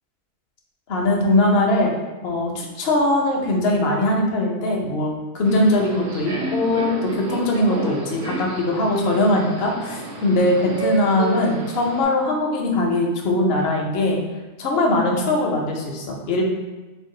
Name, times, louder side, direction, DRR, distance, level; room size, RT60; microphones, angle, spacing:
voice 1, 0.9-1.9 2.2-14.2 14.6-16.4, left 1 dB, 55° left, 0 dB, 0.7 m, -21 dB
Subway metro underground, 5.4-12.0, right 2 dB, 80° right, 1.3 m, -31 dB
4.5 x 2.3 x 3.7 m, 1.2 s
omnidirectional pair, 1.6 m